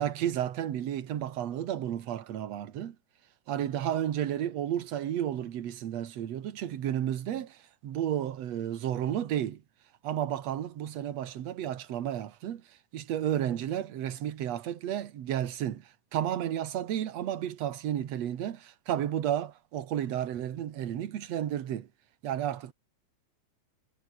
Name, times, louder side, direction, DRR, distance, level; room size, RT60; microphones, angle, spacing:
voice 1, 0.0-3.0 3.5-7.6 7.8-9.6 10.0-12.6 12.9-21.9 22.2-22.7, right 10 dB, 55° right, 2.4 m, -32 dB
omnidirectional pair, 3.9 m